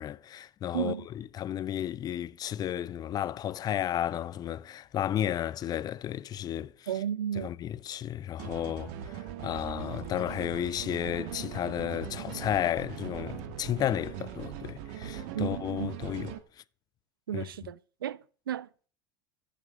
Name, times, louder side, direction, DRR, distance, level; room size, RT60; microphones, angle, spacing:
voice 1, 0.0-6.9 7.4-16.3 17.3-17.4, left 11 dB, 35° left, 0.7 m, -33 dB
voice 2, 0.7-1.1 6.9-7.5 15.3-15.9 17.3-18.9, right 10 dB, 75° right, 0.6 m, -34 dB
sound 1, 8.4-16.4, right 10 dB, 60° right, 1.5 m, -40 dB
15.5 x 6.8 x 6.1 m
hypercardioid pair, 80°, 12 cm